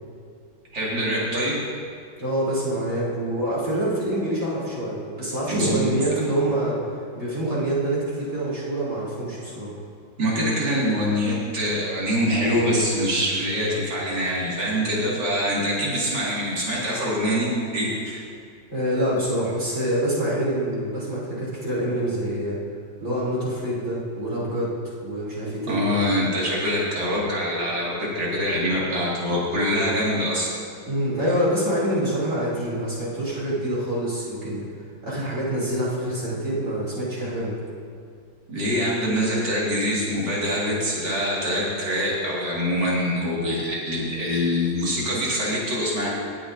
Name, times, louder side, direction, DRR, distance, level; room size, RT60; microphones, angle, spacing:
voice 1, 0.7-1.6 5.5-6.0 10.2-18.2 25.7-30.5 38.5-46.1, equal, 70° right, -6 dB, 2.8 m, -24 dB
voice 2, 2.2-6.8 7.1-9.8 18.7-22.6 23.0-24.7 25.0-26.0 30.9-34.6 35.0-37.6, right 1 dB, 40° right, -7 dB, 3.3 m, -26 dB
17.5 x 8.8 x 2.6 m, 2.4 s
omnidirectional pair, 1.9 m